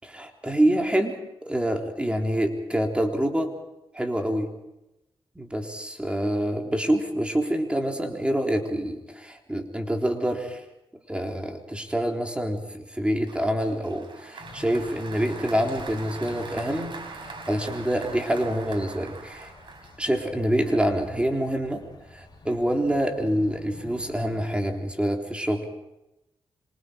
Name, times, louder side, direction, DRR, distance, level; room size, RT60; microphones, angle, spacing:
voice 1, 0.0-3.6 3.9-4.5 5.4-10.6 11.1-16.9 17.2-19.5 20.0-21.8 22.1-25.7, right 1 dB, 10° right, 3 dB, 3.8 m, -26 dB
Applause, 13.3-20.4, right 4 dB, 55° right, 6.0 m, -42 dB
sound 1, 14.4-24.5, left 3 dB, 45° left, 7.5 m, -48 dB
27.0 x 25.0 x 5.2 m, 0.90 s
cardioid pair, 70°, 10 cm